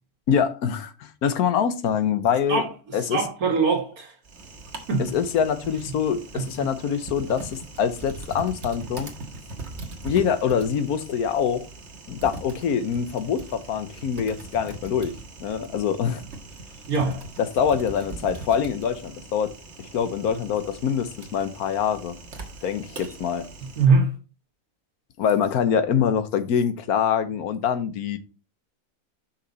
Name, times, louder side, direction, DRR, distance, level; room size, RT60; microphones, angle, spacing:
voice 1, 0.3-2.6 2.9-3.3 5.0-9.1 10.0-11.7 12.1-15.1 15.4-16.2 17.4-19.5 19.8-22.1 22.6-23.4 25.2-28.2, left 7 dB, 85° left, 1.4 m, -24 dB
voice 2, 3.1-4.1 4.9-5.1 6.3-6.4 16.9-17.2 23.8-24.1, right 4 dB, 80° right, 2.1 m, -21 dB
Typing, 4.2-23.9, right 3 dB, 50° right, 1.7 m, -41 dB
6.0 x 5.9 x 4.0 m
omnidirectional pair, 1.5 m